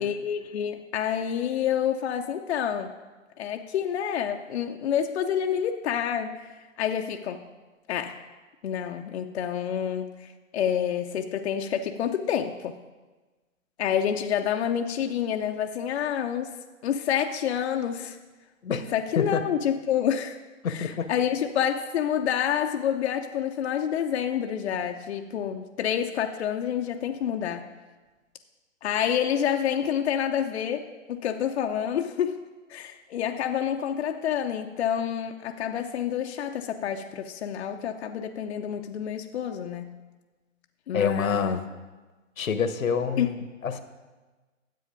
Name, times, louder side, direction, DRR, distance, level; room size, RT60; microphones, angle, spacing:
voice 1, 0.0-2.9 3.4-6.4 6.8-7.4 7.9-8.2 8.6-12.8 13.8-16.6 16.8-18.2 18.9-20.4 20.7-27.7 28.8-32.4 32.7-40.0 40.9-41.6 43.2-43.3, left 9 dB, 55° left, 4 dB, 0.7 m, -28 dB
voice 2, 18.6-19.4 20.6-21.1 40.9-41.6 42.4-43.8, left 6 dB, 80° left, 10 dB, 1.1 m, -27 dB
10.0 x 7.7 x 5.1 m, 1.3 s
hypercardioid pair, 135°, 40 cm